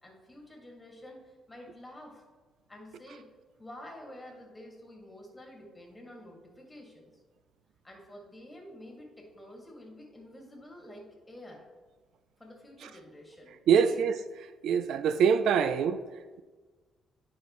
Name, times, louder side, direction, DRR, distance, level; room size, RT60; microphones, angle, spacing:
voice 1, 0.0-2.2 2.7-3.3 3.6-7.2 7.8-11.6 12.4-14.0, left 1 dB, 15° left, 2.2 m, -49 dB
voice 2, 13.7-14.2 14.6-16.0, right 7 dB, 75° right, 0.3 m, -24 dB
10.0 x 5.2 x 3.1 m
cardioid pair, 90°, 0 cm